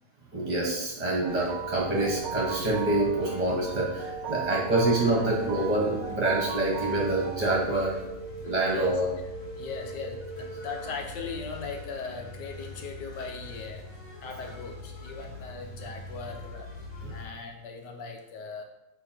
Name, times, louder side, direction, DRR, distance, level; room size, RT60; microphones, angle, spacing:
voice 1, 0.3-8.0 8.4-9.1 17.0-17.1, right 2 dB, 25° right, -4 dB, 1.2 m, -26 dB
sound 1, 1.2-7.6, right 7 dB, 65° right, 1.0 m, -37 dB
sound 2, 1.3-17.2, left 1 dB, 15° left, 1.4 m, -43 dB
sound 3, 1.5-10.8, right 3 dB, 55° left, 0.7 m, -41 dB
voice 2, 4.5-4.9 8.7-8.9 9.6-13.8 14.2-18.6, left 5 dB, 75° left, 3 dB, 1.6 m, -39 dB
6.8 x 4.4 x 4.5 m, 0.93 s
omnidirectional pair, 1.9 m